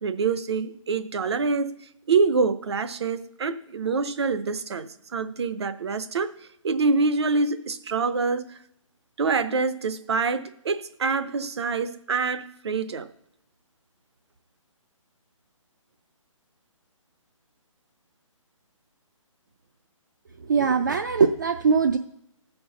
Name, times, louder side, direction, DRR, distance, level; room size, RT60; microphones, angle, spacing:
voice 1, 0.0-1.8 2.1-6.3 6.6-8.6 9.2-13.1, right 4 dB, 55° right, 12 dB, 0.7 m, -26 dB
voice 2, 20.4-22.0, right 5 dB, 35° right, 7 dB, 0.4 m, -21 dB
13.5 x 4.6 x 6.7 m, 0.77 s
hypercardioid pair, 170°, 17 cm